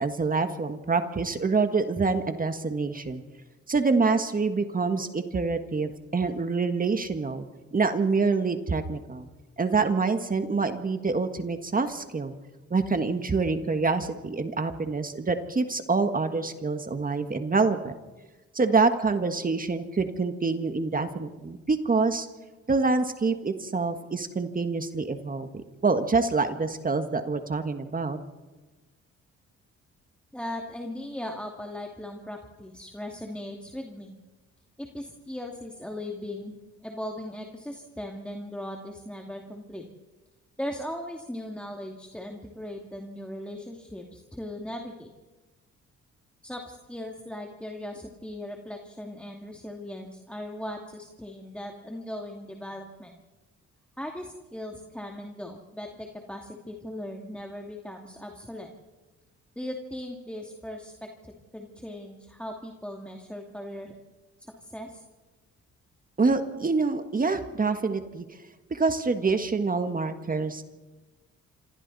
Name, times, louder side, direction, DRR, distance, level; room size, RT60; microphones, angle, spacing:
voice 1, 0.0-3.2 3.7-9.3 9.6-12.3 12.7-18.0 18.5-22.3 22.7-28.2 66.2-68.2 68.7-70.6, right 4 dB, 30° right, 8 dB, 1.6 m, -26 dB
voice 2, 30.3-34.1 34.8-39.8 40.6-45.1 46.4-53.2 54.0-58.7 59.6-63.9 64.4-65.0, left 1 dB, 5° left, 2 dB, 2.4 m, -38 dB
27.5 x 26.5 x 4.2 m, 1.2 s
cardioid pair, 90°, 30 cm